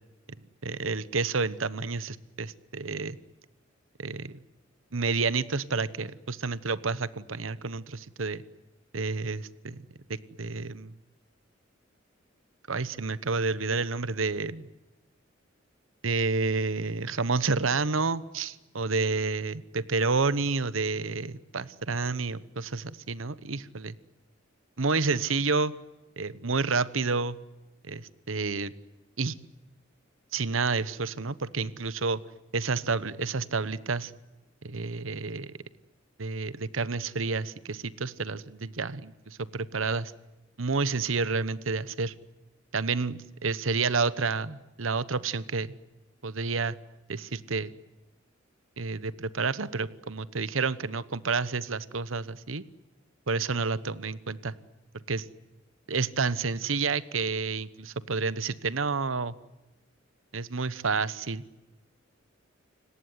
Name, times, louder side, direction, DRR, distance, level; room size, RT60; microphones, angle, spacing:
voice 1, 0.6-3.2 4.0-4.4 4.9-8.4 8.9-9.8 10.1-10.9 12.7-14.7 16.0-23.9 24.8-25.7 26.2-27.4 27.9-28.7 29.2-29.3 30.3-32.2 32.5-34.1 34.6-35.5 36.2-40.1 40.6-42.1 42.7-45.8 46.2-46.8 47.1-47.7 48.8-52.6 53.3-54.5 55.1-55.2 55.9-59.3 60.3-61.4, right 4 dB, 80° right, 17 dB, 1.1 m, -29 dB
30.0 x 18.5 x 9.7 m, 1.1 s
head